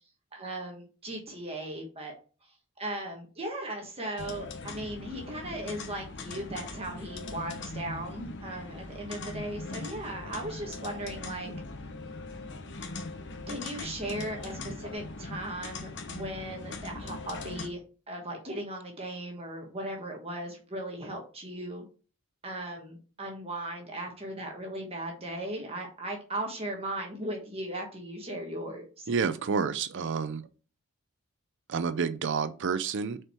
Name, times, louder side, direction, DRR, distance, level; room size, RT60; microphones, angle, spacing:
voice 1, 0.3-2.1 2.4-11.5 13.5-17.8 18.1-21.8 22.4-29.1, right 1 dB, 25° right, 1.4 m, -37 dB
sound 1, 4.2-17.7, left 3 dB, 55° left, 1.0 m, -40 dB
voice 2, 29.1-30.5 31.7-33.2, right 5 dB, 55° right, 0.5 m, -29 dB
6.5 x 4.5 x 4.5 m
head